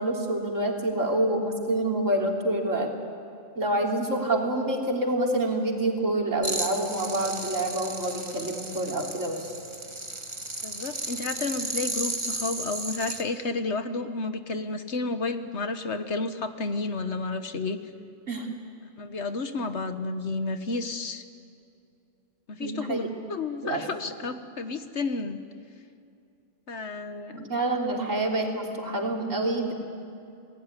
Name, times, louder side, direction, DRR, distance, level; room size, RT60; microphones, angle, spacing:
voice 1, 0.0-2.9 3.6-9.5 18.3-18.5 22.6-23.0 23.6-23.8 27.4-29.7, right 1 dB, 80° right, 0 dB, 3.8 m, -27 dB
sound 1, 6.4-13.2, right 2 dB, 25° right, 1.7 m, -34 dB
voice 2, 10.6-17.8 19.0-21.2 22.5-25.4 26.7-27.5, left 3 dB, 65° left, 9 dB, 1.6 m, -31 dB
29.5 x 20.0 x 9.9 m, 2.6 s
omnidirectional pair, 1.3 m